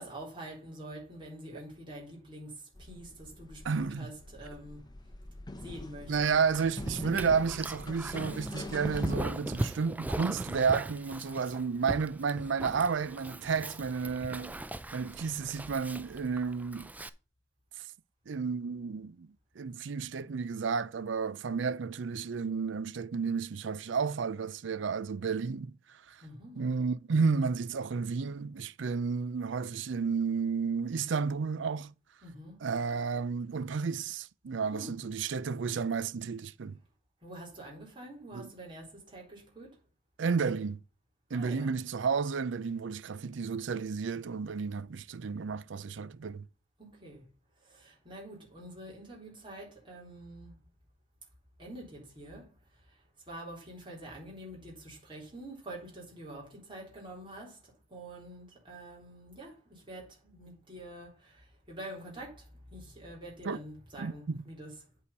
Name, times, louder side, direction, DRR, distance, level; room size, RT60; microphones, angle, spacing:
voice 1, 0.0-5.2 5.6-6.4 26.2-26.7 32.2-32.6 34.7-35.1 37.2-39.8 41.3-41.8 46.8-47.3 47.6-50.6 51.6-64.9, right 1 dB, 25° right, 3.8 m, -46 dB
sound 1, 2.7-9.1, left 1 dB, 20° left, 0.9 m, -43 dB
voice 2, 3.6-4.1 6.1-14.6 14.9-16.9 18.3-19.3 19.6-26.2 26.6-31.9 32.6-36.8 38.3-38.5 40.2-40.8 41.3-46.5 63.4-63.6 64.0-64.4, right 5 dB, 65° right, 0.5 m, -32 dB
Dog, 6.5-17.1, right 1 dB, 10° right, 0.4 m, -39 dB
8.3 x 5.0 x 5.4 m
head